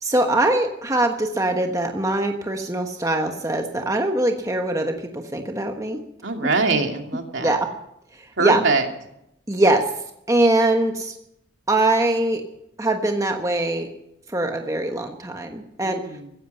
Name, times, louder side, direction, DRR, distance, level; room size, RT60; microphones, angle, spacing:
voice 1, 0.0-6.0 7.4-7.7 8.1-8.6 9.5-9.9 10.3-11.2 11.7-12.4 12.8-13.9 14.3-16.0, right 2 dB, 15° right, 4 dB, 1.2 m, -22 dB
voice 2, 6.2-7.5 8.4-8.9 15.8-16.3, right 3 dB, 70° right, 3 dB, 2.6 m, -23 dB
16.0 x 15.5 x 5.6 m, 0.80 s
head